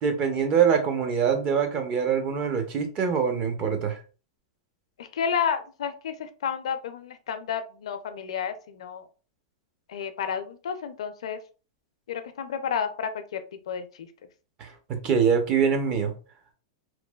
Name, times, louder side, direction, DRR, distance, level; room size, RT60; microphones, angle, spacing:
voice 1, 0.0-4.0 14.6-14.7 15.0-16.1, right 7 dB, 35° right, 5 dB, 0.7 m, -24 dB
voice 2, 5.0-9.0 9.9-11.4 12.1-14.1, left 7 dB, 80° left, 9 dB, 0.4 m, -31 dB
3.0 x 2.2 x 2.2 m, 0.35 s
hypercardioid pair, 135°, 3 cm